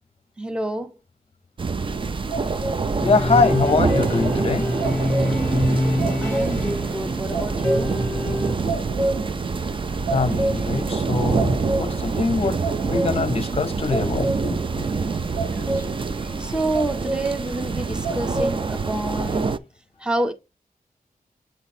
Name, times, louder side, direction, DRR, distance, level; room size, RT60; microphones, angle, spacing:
voice 1, 0.4-0.9 6.2-8.0 16.4-19.6 20.0-20.3, right 1 dB, 5° right, 0.8 m, -27 dB
sound 1, 1.6-19.6, right 4 dB, 35° right, 0.4 m, -26 dB
sound 2, 1.8-19.4, right 2 dB, 80° right, 2.7 m, -31 dB
voice 2, 3.0-4.6 10.1-12.6 12.8-14.6, left 4 dB, 40° left, 0.7 m, -23 dB
sound 3, 3.0-8.5, left 1 dB, 15° left, 1.1 m, -26 dB
7.5 x 3.0 x 4.2 m
wide cardioid pair, 130°, 15 cm